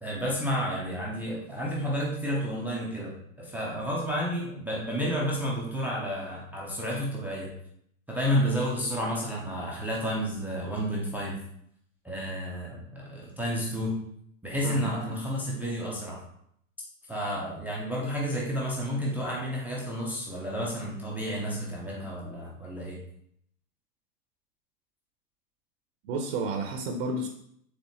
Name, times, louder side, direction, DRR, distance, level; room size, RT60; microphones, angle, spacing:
voice 1, 0.0-7.5 8.1-11.4 12.0-14.0 14.4-16.2 17.1-23.0, equal, 5° right, -3 dB, 0.4 m, -31 dB
voice 2, 14.6-15.2 26.0-27.3, right 2 dB, 60° right, 3 dB, 0.7 m, -31 dB
4.3 x 3.2 x 2.9 m, 0.70 s
hypercardioid pair, 110°, 41 cm